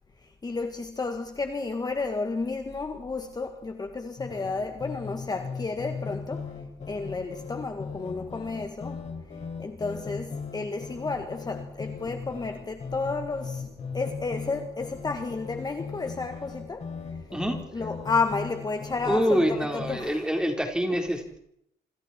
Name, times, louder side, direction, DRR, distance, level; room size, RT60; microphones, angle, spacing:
voice 1, 0.2-6.5 6.9-9.1 9.6-13.7 13.9-16.9 17.7-20.3 20.9-21.0, left 4 dB, 20° left, 1.7 m, -32 dB
sound 1, 4.2-20.0, left 5 dB, 40° left, 6.4 m, -38 dB
voice 2, 19.0-21.4, equal, 5° right, 4.2 m, -26 dB
27.5 x 26.5 x 4.5 m
cardioid pair, 155°, 18 cm